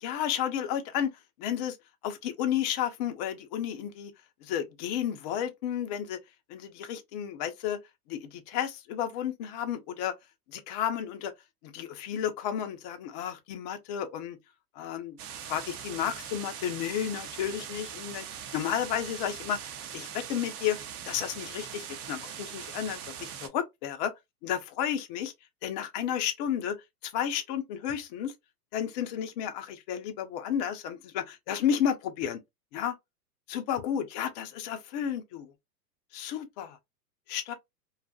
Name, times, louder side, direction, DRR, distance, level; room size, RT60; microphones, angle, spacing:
voice 1, 0.0-1.1 1.4-1.8 2.0-4.1 4.5-6.2 6.5-7.8 8.1-10.1 10.5-11.3 11.7-14.4 14.8-15.2 15.5-18.2 18.5-19.6 19.9-20.8 21.1-24.1 24.4-25.3 25.6-26.8 27.1-28.3 28.7-32.4 32.7-32.9 33.5-35.5 36.1-36.8 37.3-37.5, left 9 dB, 30° left, 0.4 m, -32 dB
Synthesized Operator Rain, 15.2-23.5, right 8 dB, 60° right, 0.8 m, -41 dB
2.5 x 2.3 x 2.4 m
hypercardioid pair, 105°, 50 cm